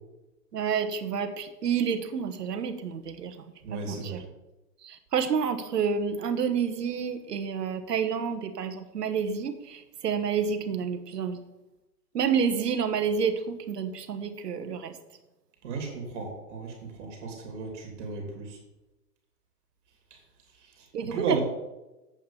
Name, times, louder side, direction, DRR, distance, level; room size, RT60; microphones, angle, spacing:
voice 1, 0.5-3.5 3.7-4.2 4.8-11.4 12.1-15.0 20.9-21.4, right 6 dB, 75° right, 8 dB, 1.4 m, -29 dB
voice 2, 3.6-4.2 15.6-18.6 20.1-20.2 20.5-21.4, right 3 dB, 45° right, 1 dB, 2.8 m, -35 dB
8.2 x 5.8 x 7.1 m, 1.0 s
hypercardioid pair, 145°, 49 cm